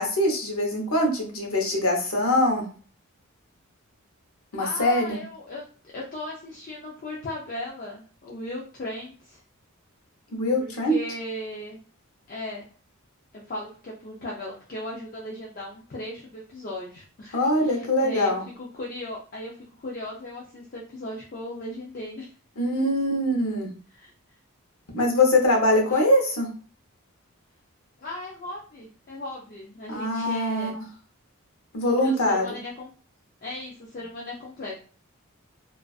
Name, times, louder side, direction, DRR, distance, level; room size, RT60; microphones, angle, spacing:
voice 1, 0.0-2.7 4.5-5.2 10.3-11.0 17.3-18.4 22.6-23.7 24.9-26.5 29.9-30.7 31.7-32.4, left 1 dB, 70° left, 0 dB, 0.8 m, -23 dB
voice 2, 4.6-5.6 5.9-9.4 10.6-11.8 12.3-12.7 13.3-22.3 23.9-24.1 25.8-26.1 28.0-30.7 31.9-32.9 33.4-34.8, left 1 dB, 40° left, -3 dB, 0.4 m, -37 dB
2.4 x 2.3 x 2.3 m, 0.42 s
head